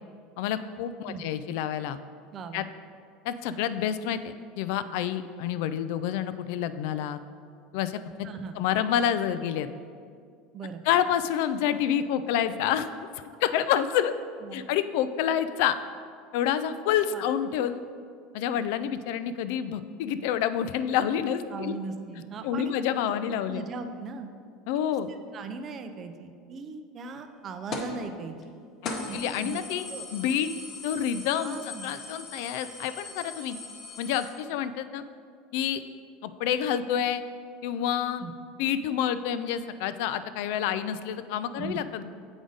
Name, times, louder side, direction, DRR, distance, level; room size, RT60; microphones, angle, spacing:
voice 1, 0.4-2.0 2.5-2.6 3.2-7.2 7.7-8.3 8.6-9.7 10.9-12.9 13.4-14.1 14.5-15.8 16.3-17.8 18.3-21.7 22.4-23.6 24.7-25.1 28.8-29.8 30.1-30.5 30.8-33.6 34.0-35.0 35.5-35.8 36.2-37.2 37.6-38.2 38.6-42.0, left 9 dB, 65° left, 12 dB, 0.3 m, -28 dB
voice 2, 2.3-2.7 8.2-8.6 10.5-10.8 14.4-14.6 17.1-17.2 21.5-22.7 23.5-24.3 24.7-25.0 25.3-28.6 29.1-29.6 29.9-30.1 31.4-31.9 38.2-38.3 41.6-41.8, right 4 dB, 30° right, 8 dB, 0.4 m, -38 dB
sound 1, 27.7-28.0 28.4-28.5 28.8-34.3, left 3 dB, 35° left, 0.8 m, -39 dB
7.9 x 4.9 x 3.9 m, 2.2 s
cardioid pair, 160°, 0 cm